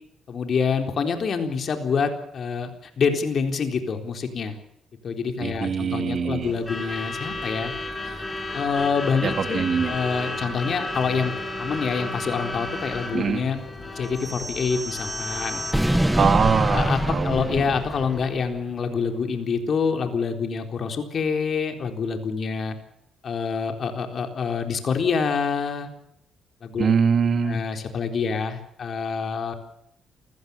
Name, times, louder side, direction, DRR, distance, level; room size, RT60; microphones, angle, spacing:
voice 1, 0.3-4.5 5.0-7.7 8.0-8.2 8.5-13.6 13.9-15.6 16.7-22.8 23.2-25.9 26.6-26.9 27.4-29.5, left 5 dB, 55° left, 5 dB, 3.9 m, -26 dB
voice 2, 5.4-6.5 9.2-9.9 13.1-13.4 16.2-17.7 26.8-27.6, right 6 dB, 50° right, 8 dB, 2.4 m, -23 dB
Truck / Alarm, 6.4-18.4, left 2 dB, 20° left, 7.0 m, -33 dB
sound 1, 14.2-18.5, right 1 dB, 5° right, 1.3 m, -26 dB
28.0 x 16.5 x 7.1 m, 0.76 s
cardioid pair, 90°, 0 cm